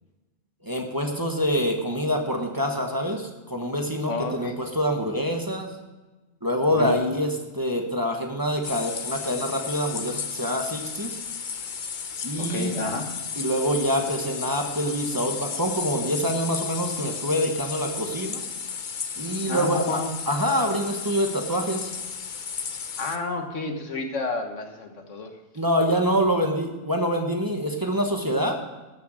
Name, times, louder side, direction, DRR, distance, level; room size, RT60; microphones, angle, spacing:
voice 1, 0.6-5.7 6.4-11.2 12.2-12.8 13.4-18.4 19.2-20.0 20.3-21.9 25.5-28.6, equal, 15° right, 2 dB, 1.2 m, -26 dB
voice 2, 4.1-4.6 6.8-6.9 12.4-13.1 19.5-20.1 23.0-25.3, left 3 dB, 75° left, 5 dB, 1.7 m, -30 dB
sound 1, 8.6-23.2, left 6 dB, 45° left, 0.8 m, -34 dB
14.0 x 7.0 x 6.3 m, 1.2 s
omnidirectional pair, 1.3 m